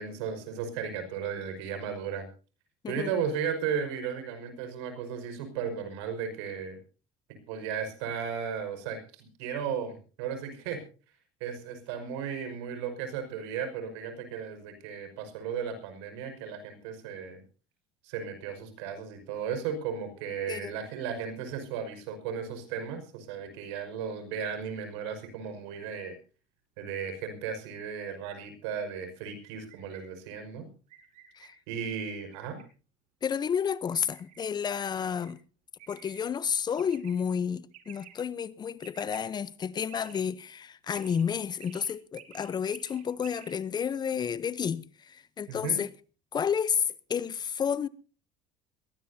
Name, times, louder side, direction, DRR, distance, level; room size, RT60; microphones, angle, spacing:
voice 1, 0.0-2.3 2.9-6.8 7.5-10.8 11.4-17.4 18.0-26.2 26.8-30.7 31.7-32.6 45.5-45.8, right 7 dB, 90° right, 5.5 m, -35 dB
sound 1, 27.9-28.4 29.4-30.1 30.9-31.5 32.2-32.6 33.9-34.4 35.0-35.3 35.8-36.2 36.7-37.1 37.7-38.1 38.8-39.2 39.9-40.3 40.9-41.2 41.6-43.5, right 11 dB, 60° right, 5.3 m, -53 dB
voice 2, 33.2-35.4 35.9-45.9 46.3-47.9, left 7 dB, 30° left, 0.8 m, -31 dB
22.0 x 18.0 x 2.8 m
supercardioid pair, 110°, 14 cm